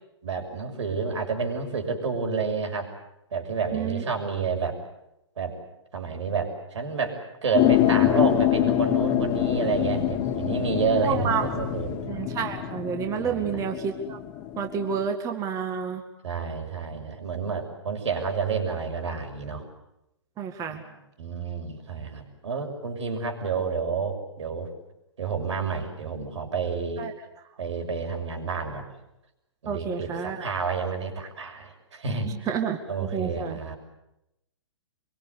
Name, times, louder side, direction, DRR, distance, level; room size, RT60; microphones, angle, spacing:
voice 1, 0.2-2.9 3.3-4.8 5.4-5.6 5.9-12.0 13.2-13.5 16.2-19.7 20.7-20.8 21.2-24.7 25.2-27.1 27.6-28.8 29.6-32.5 32.9-33.8, right 5 dB, 75° right, 4 dB, 6.7 m, -29 dB
voice 2, 3.7-4.0 11.0-11.5 12.1-14.2 14.6-16.0 20.4-20.8 27.0-27.1 29.7-30.6 32.2-33.6, right 7 dB, 20° right, 5 dB, 2.1 m, -29 dB
sound 1, 7.5-15.0, left 13 dB, 30° left, 1.9 m, -25 dB
25.5 x 23.0 x 8.4 m, 0.87 s
hypercardioid pair, 140°, 15 cm